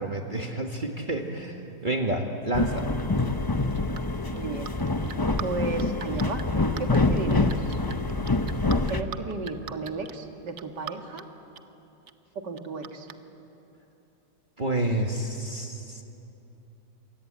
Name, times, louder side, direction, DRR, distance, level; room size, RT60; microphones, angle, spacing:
voice 1, 0.0-2.9 14.6-16.0, right 2 dB, 30° right, 2 dB, 1.6 m, -29 dB
sound 1, 2.5-9.0, left 2 dB, 25° left, 0.5 m, -26 dB
sound 2, 3.4-5.4 5.7-10.1 10.6-11.2 11.5-11.6 12.1-12.2 12.5-13.1, right 9 dB, 50° right, 1.0 m, -40 dB
voice 2, 4.3-4.7 5.4-6.5 6.8-7.8 8.9-11.2 12.4-13.1, right 4 dB, 80° right, 4 dB, 2.6 m, -34 dB
28.0 x 23.0 x 8.8 m, 2.9 s
omnidirectional pair, 1.8 m